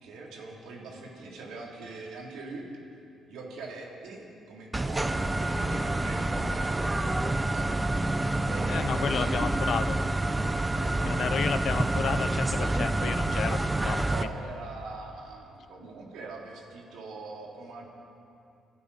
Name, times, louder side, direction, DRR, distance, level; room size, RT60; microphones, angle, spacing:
voice 1, 0.0-2.7 3.3-7.7 8.5-9.3 10.7-11.8 14.1-17.9, right 3 dB, 85° right, -1 dB, 3.1 m, -43 dB
sound 1, 4.7-14.2, right 2 dB, 15° right, 0.8 m, -28 dB
voice 2, 8.7-10.0 11.0-14.0, left 7 dB, 60° left, 12 dB, 0.7 m, -32 dB
25.5 x 12.5 x 4.2 m, 2.6 s
cardioid pair, 90°, 0 cm